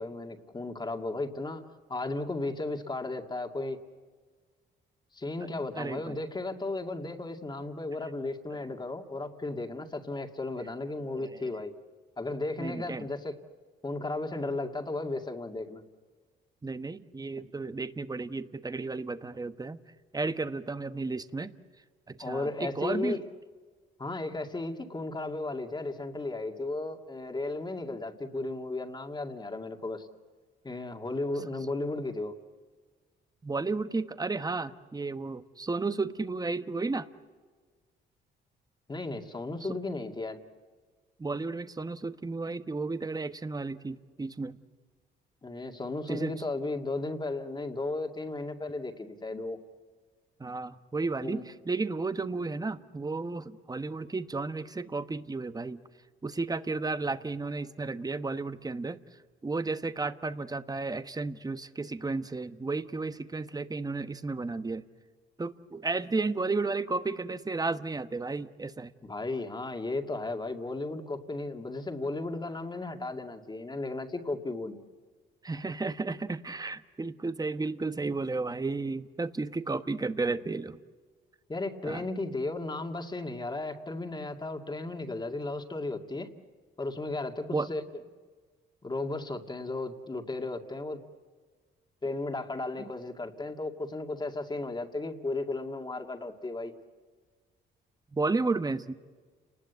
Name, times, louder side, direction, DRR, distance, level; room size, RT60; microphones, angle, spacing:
voice 1, 0.0-1.6 1.9-3.8 5.1-11.7 12.2-13.4 13.8-15.8 17.4-17.5 22.2-23.2 24.0-30.1 30.6-32.3 38.9-40.4 45.4-49.6 51.2-51.4 69.0-74.7 81.5-86.3 86.8-87.8 88.8-91.0 92.0-96.7, left 2 dB, 20° left, 5 dB, 2.3 m, -35 dB
voice 2, 5.8-6.2 8.5-8.6 11.1-11.4 12.6-13.1 16.6-19.8 20.1-21.5 22.1-23.2 33.4-37.1 41.2-44.6 46.1-46.3 50.4-55.8 56.2-59.0 59.4-64.8 65.4-68.9 75.4-80.8 81.8-82.1 87.5-87.7 92.8-92.9 98.1-98.9, right 3 dB, 20° right, 11 dB, 1.2 m, -33 dB
30.0 x 19.5 x 8.2 m, 1.5 s
cardioid pair, 90°, 20 cm